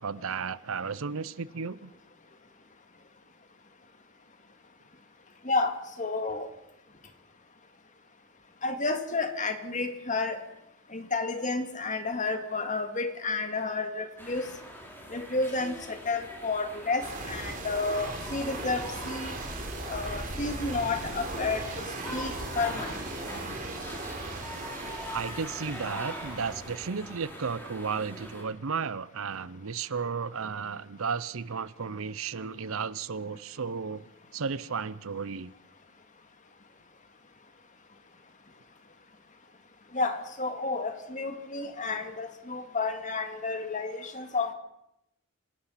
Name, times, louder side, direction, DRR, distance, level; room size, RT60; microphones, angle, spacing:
voice 1, 0.0-1.9 25.1-34.0 34.3-35.5, right 5 dB, 65° right, 18 dB, 0.7 m, -34 dB
voice 2, 6.0-6.5 8.6-10.4 10.9-14.5 15.1-19.3 19.9-21.8 22.1-22.9 39.9-44.5, left 3 dB, 35° left, 7 dB, 2.1 m, -31 dB
sound 1, 14.2-28.4, equal, 10° left, 3.9 m, -43 dB
sound 2, 17.0-26.7, right 2 dB, 35° right, 3.6 m, -38 dB
26.5 x 17.5 x 5.8 m, 0.83 s
head